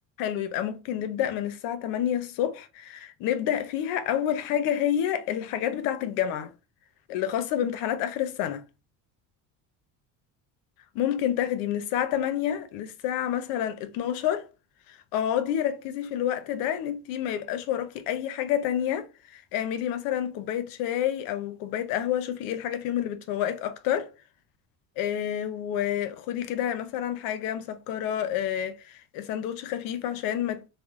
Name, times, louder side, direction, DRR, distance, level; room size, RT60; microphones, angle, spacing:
voice 1, 0.2-6.5 7.1-8.6 10.9-14.5 14.9-24.1 25.0-30.7, left 10 dB, 75° left, 0.7 m, -29 dB
3.5 x 2.1 x 3.5 m
cardioid pair, 160°, 34 cm